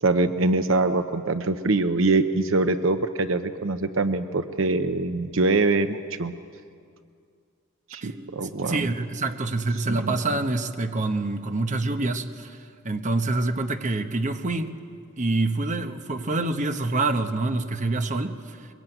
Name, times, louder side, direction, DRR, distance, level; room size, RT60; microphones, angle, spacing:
voice 1, 0.0-6.3 7.9-8.9 9.9-10.1, right 3 dB, 70° right, 10 dB, 0.8 m, -24 dB
voice 2, 8.0-12.6 12.8-14.8 15.2-18.7, right 2 dB, 40° right, 7 dB, 1.1 m, -26 dB
23.0 x 21.5 x 9.2 m, 2.3 s
head